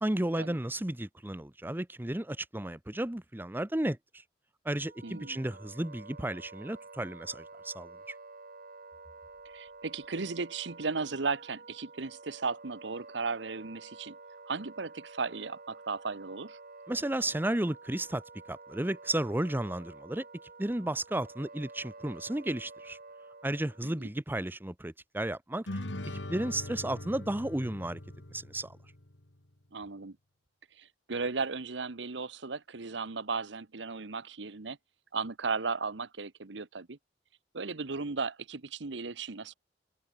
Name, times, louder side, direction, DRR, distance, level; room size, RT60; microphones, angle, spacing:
voice 1, 0.0-4.0 4.6-8.1 16.9-18.2 18.5-20.2 20.6-23.0 23.4-25.8 26.1-28.0 28.3-28.8, right 1 dB, 10° right, 0.8 m, -33 dB
Wind instrument woodwind instrument, 4.7-23.9, right 3 dB, 50° right, 4.0 m, -50 dB
voice 2, 5.0-5.4 9.5-14.1 14.5-16.6 23.8-24.1 29.7-30.2 30.8-34.8 35.1-37.0 37.5-39.5, right 4 dB, 75° right, 1.1 m, -36 dB
sound 1, 25.7-29.3, left 1 dB, 80° left, 2.5 m, -41 dB
head